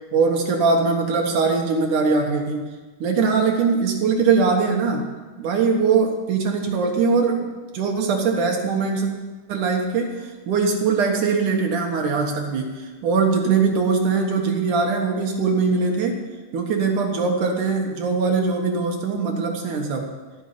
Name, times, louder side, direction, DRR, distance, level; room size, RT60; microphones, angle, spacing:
voice 1, 0.1-2.7 3.0-5.1 5.4-7.5 7.7-9.1 9.5-16.2 16.5-20.1, right 4 dB, 60° right, 2 dB, 2.6 m, -21 dB
16.5 x 6.4 x 9.7 m, 1.3 s
omnidirectional pair, 4.4 m